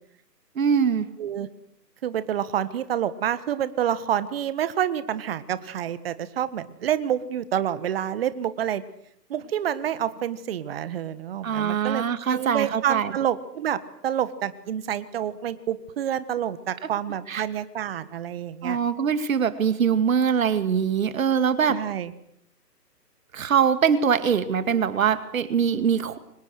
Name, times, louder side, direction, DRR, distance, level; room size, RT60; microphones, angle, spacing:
voice 1, 0.6-1.1 11.4-13.1 17.3-17.4 18.6-21.8 23.3-26.2, right 7 dB, 55° right, 12 dB, 2.4 m, -23 dB
voice 2, 2.0-8.8 9.3-12.0 12.3-18.8 21.7-22.1, right 10 dB, 35° right, 14 dB, 1.6 m, -28 dB
30.0 x 25.0 x 6.6 m, 0.70 s
hypercardioid pair, 150°, 49 cm